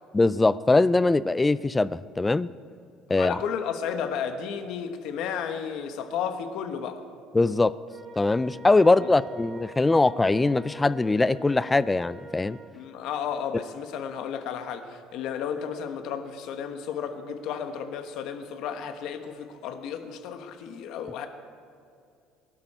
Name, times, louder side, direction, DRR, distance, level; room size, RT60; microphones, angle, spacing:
voice 1, 0.1-2.5 3.1-3.4 7.3-7.7 8.2-12.6, left 3 dB, 10° left, 17 dB, 0.3 m, -22 dB
voice 2, 3.1-7.0 9.0-9.1 12.7-21.3, left 7 dB, 60° left, 6 dB, 1.4 m, -33 dB
Wind instrument woodwind instrument, 7.9-12.7, right 3 dB, 25° right, 2.2 m, -45 dB
23.5 x 11.5 x 4.4 m, 2.4 s
cardioid pair, 160°, 0 cm